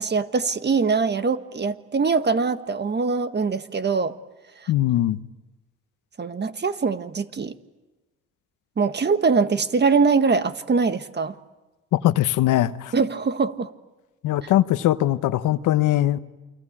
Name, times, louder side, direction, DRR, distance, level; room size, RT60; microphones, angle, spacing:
voice 1, 0.0-4.1 4.6-4.7 6.2-7.5 8.8-11.3 12.9-13.7, right 4 dB, 35° right, 1.5 m, -22 dB
voice 2, 4.7-5.2 11.9-12.9 14.2-16.2, left 14 dB, 85° left, 1.1 m, -21 dB
28.5 x 24.0 x 8.8 m
cardioid pair, 90°, 30 cm